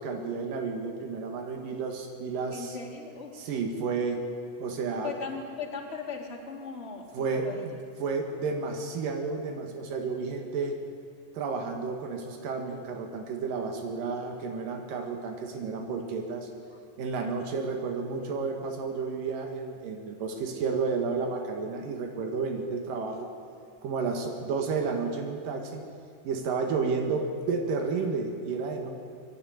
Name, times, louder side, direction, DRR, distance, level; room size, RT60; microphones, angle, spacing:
voice 1, 0.0-2.8 3.4-4.2 4.6-5.1 7.1-7.7 8.0-10.8 11.3-16.5 17.0-23.3 23.8-25.8 26.2-28.9, right 4 dB, 85° right, 3 dB, 3.2 m, -31 dB
voice 2, 2.5-3.4 5.0-7.7 16.7-16.8 17.2-17.6, left 5 dB, 20° left, 0 dB, 2.2 m, -38 dB
25.0 x 11.0 x 9.3 m, 2.4 s
omnidirectional pair, 3.8 m